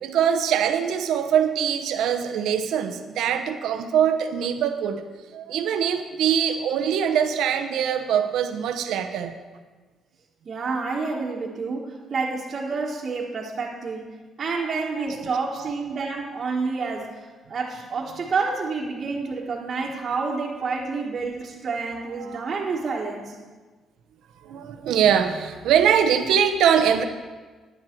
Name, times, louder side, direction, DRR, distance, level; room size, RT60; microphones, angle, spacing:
voice 1, 0.0-5.1 5.3-9.3 15.0-15.1 15.6-15.7 22.2-22.4 24.4-27.0, right 8 dB, 85° right, 7 dB, 0.7 m, -23 dB
voice 2, 10.4-23.3, right 4 dB, 45° right, -5 dB, 1.4 m, -29 dB
10.5 x 9.9 x 4.5 m, 1.3 s
cardioid pair, 90°, 0 cm